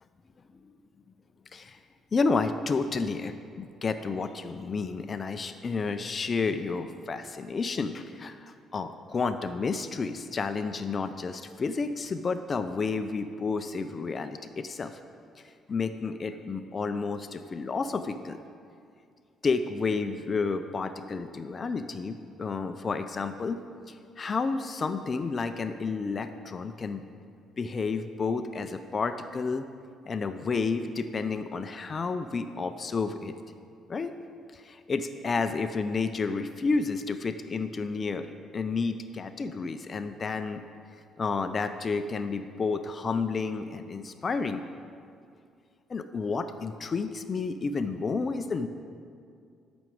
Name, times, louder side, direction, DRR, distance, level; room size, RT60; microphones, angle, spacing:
voice 1, 2.1-15.0 15.7-18.4 19.4-23.6 23.9-27.0 27.6-29.7 30.1-33.3 33.9-34.1 34.5-38.3 38.5-40.6 41.2-44.6 45.9-48.7, left 4 dB, 30° left, 9 dB, 0.5 m, -31 dB
12.5 x 6.1 x 7.8 m, 2.4 s
cardioid pair, 140°, 0 cm